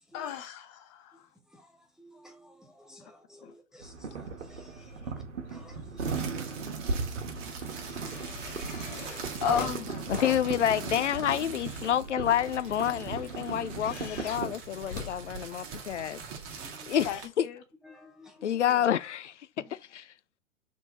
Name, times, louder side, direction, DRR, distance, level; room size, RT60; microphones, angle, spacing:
voice 1, 0.1-1.2 3.4-3.5 9.4-10.2 17.0-17.6 18.6-18.7, left 7 dB, 30° left, 0.9 m, -33 dB
voice 2, 1.5-5.1 5.5-6.2 7.8-9.4 16.6-17.0 17.8-18.6, equal, ahead, 0.6 m, -55 dB
sound 1, 3.8-14.6, right 4 dB, 65° right, 1.4 m, -37 dB
sound 2, 5.5-6.2 6.5-15.9 16.7-16.8, left 4 dB, 45° left, 2.1 m, -44 dB
sound 3, 6.0-17.3, right 5 dB, 40° right, 1.8 m, -43 dB
voice 3, 10.1-16.2 16.9-17.5 18.4-19.3 19.7-20.1, left 10 dB, 65° left, 0.6 m, -28 dB
4.7 x 3.8 x 5.3 m
figure-of-eight pair, 105°, 38 cm